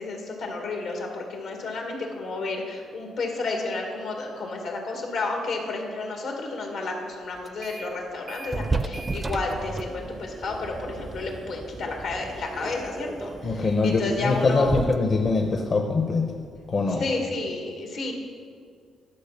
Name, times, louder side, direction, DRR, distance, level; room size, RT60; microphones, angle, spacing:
voice 1, 0.0-14.8 17.0-18.1, left 3 dB, 75° left, 1 dB, 2.1 m, -31 dB
sound 1, 7.5-8.0 8.3-16.7, right 3 dB, 25° right, 0.4 m, -34 dB
voice 2, 13.4-16.3 16.7-17.0, left 3 dB, 45° left, 3 dB, 0.9 m, -23 dB
12.0 x 6.0 x 5.9 m, 2.2 s
cardioid pair, 90°, 0 cm